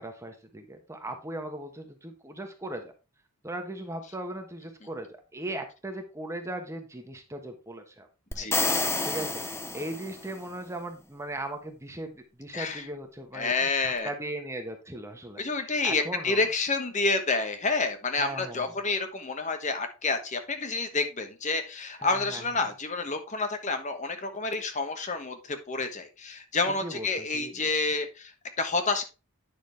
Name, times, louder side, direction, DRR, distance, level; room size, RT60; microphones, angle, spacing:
voice 1, 0.0-2.9 3.4-8.5 9.0-9.4 9.7-13.5 13.8-16.4 18.2-18.6 22.0-22.4 26.8-27.7, right 1 dB, 15° right, 4 dB, 1.1 m, -38 dB
sound 1, 8.3-10.4, left 3 dB, 10° left, 0.6 m, -29 dB
voice 2, 8.4-8.9 12.5-12.9 13.3-14.1 15.4-29.0, left 3 dB, 35° left, 7 dB, 1.2 m, -29 dB
9.7 x 6.1 x 3.4 m, 0.30 s
head